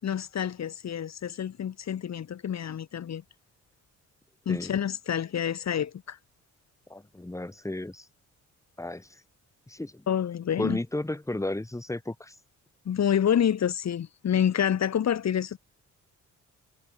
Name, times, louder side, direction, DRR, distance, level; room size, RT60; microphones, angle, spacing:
voice 1, 0.0-3.2 4.4-6.2 10.1-10.8 12.8-15.6, left 9 dB, 60° left, 4.8 m, -28 dB
voice 2, 6.9-8.1 8.8-9.2 9.7-10.0 10.6-12.3, left 1 dB, 10° left, 5.6 m, -33 dB
cardioid pair, 105°, 30 cm